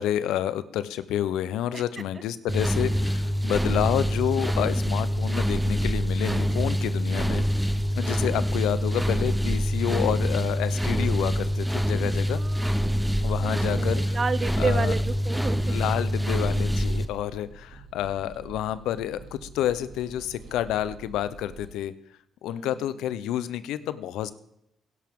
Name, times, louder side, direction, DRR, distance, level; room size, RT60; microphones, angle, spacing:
voice 1, 0.0-12.4 13.2-14.2 14.6-14.9 15.7-21.9 22.4-24.3, left 11 dB, 90° left, 15 dB, 0.6 m, -29 dB
sound 1, 2.5-17.0, equal, 5° right, 0.9 m, -25 dB
voice 2, 12.3-12.8 13.4-15.8 22.5-22.8, right 4 dB, 35° right, 17 dB, 0.5 m, -31 dB
sound 2, 12.9-21.7, right 4 dB, 70° right, 2.3 m, -47 dB
16.5 x 11.0 x 3.7 m, 0.79 s
cardioid pair, 90°, 0 cm